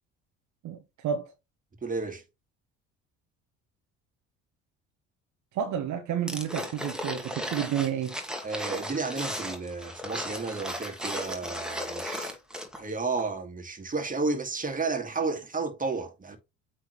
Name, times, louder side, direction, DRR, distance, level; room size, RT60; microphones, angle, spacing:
voice 1, 0.6-1.3 5.5-8.1, right 9 dB, 55° right, 1.1 m, -30 dB
voice 2, 1.8-2.2 8.4-12.4 12.8-16.4, right 4 dB, 25° right, 2.1 m, -32 dB
sound 1, 6.3-12.9 13.2-13.3, equal, ahead, 2.0 m, -36 dB
8.3 x 3.8 x 3.1 m
hypercardioid pair, 65°, 35 cm